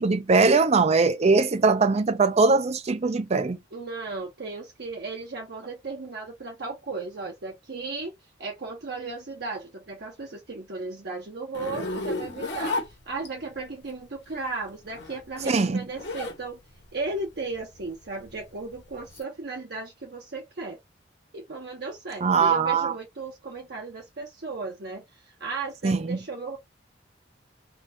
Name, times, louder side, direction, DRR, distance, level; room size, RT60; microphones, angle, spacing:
voice 1, 0.0-3.6 15.5-15.8 22.2-22.9 25.8-26.2, right 4 dB, 35° right, 0.5 m, -21 dB
voice 2, 3.7-8.1 8.4-12.8 13.1-16.6 16.9-20.8 21.3-26.6, right 3 dB, 60° right, 0.9 m, -35 dB
Zipper (clothing), 11.5-13.6 14.7-16.4 16.8-19.2, left 2 dB, 65° left, 1.2 m, -33 dB
3.7 x 2.4 x 3.0 m
head